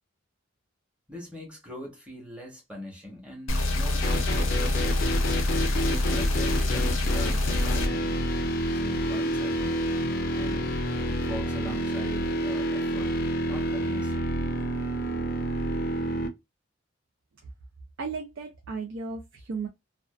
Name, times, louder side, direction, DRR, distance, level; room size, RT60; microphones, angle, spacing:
voice 1, 1.1-4.6 5.8-8.2 8.7-10.0 10.3-10.7 11.1-13.2 13.5-14.3, equal, 5° right, 1.0 m, -42 dB
sound 1, 3.5-7.9, left 2 dB, 90° left, 0.6 m, -26 dB
sound 2, 4.0-16.3, equal, 45° left, 0.5 m, -28 dB
voice 2, 18.0-19.7, right 4 dB, 75° right, 0.5 m, -35 dB
2.5 x 2.2 x 2.2 m
head